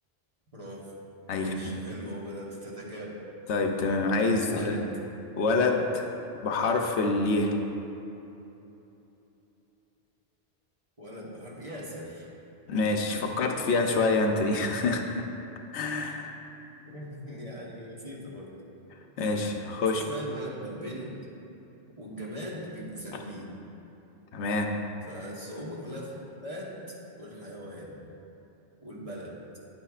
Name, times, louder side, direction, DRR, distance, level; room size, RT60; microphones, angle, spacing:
voice 1, 0.5-0.9 1.3-3.1 4.4-4.8 11.0-12.3 16.8-18.5 19.9-21.2 22.0-23.5 25.1-26.8 27.2-28.0 28.8-29.4, equal, 30° right, -5 dB, 1.3 m, -40 dB
voice 2, 1.3-1.8 3.5-4.9 5.4-6.0 6.4-7.5 12.7-15.2 15.7-16.3 19.2-20.0 23.1-23.2 24.3-24.7, left 3 dB, 85° left, 3 dB, 1.0 m, -26 dB
10.5 x 8.6 x 2.4 m, 3.0 s
omnidirectional pair, 1.1 m